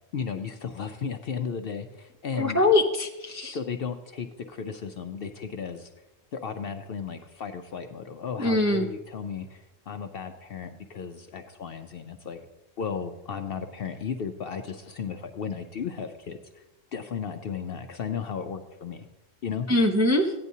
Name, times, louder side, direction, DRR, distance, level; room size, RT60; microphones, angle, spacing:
voice 1, 0.1-2.6 3.5-5.9 6.3-12.4 12.8-16.6 16.9-19.1 19.4-19.7, left 6 dB, 60° left, 6 dB, 0.7 m, -35 dB
voice 2, 2.3-3.6 8.4-8.9 19.7-20.3, left 2 dB, 20° right, 1 dB, 0.5 m, -23 dB
15.0 x 9.6 x 2.7 m, 1.0 s
omnidirectional pair, 1.3 m